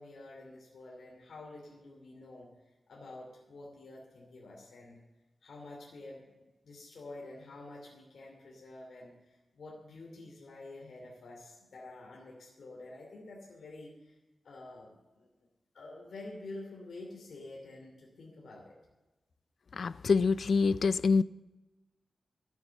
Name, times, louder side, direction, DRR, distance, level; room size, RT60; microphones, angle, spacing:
voice 1, 0.0-2.5 2.9-5.0 5.4-14.2 14.4-15.3 15.7-18.8, left 2 dB, 80° left, 2.9 m, -48 dB
voice 2, 19.7-21.2, left 4 dB, 60° left, 0.3 m, -26 dB
14.0 x 9.3 x 7.1 m
wide cardioid pair, 135°, 0 cm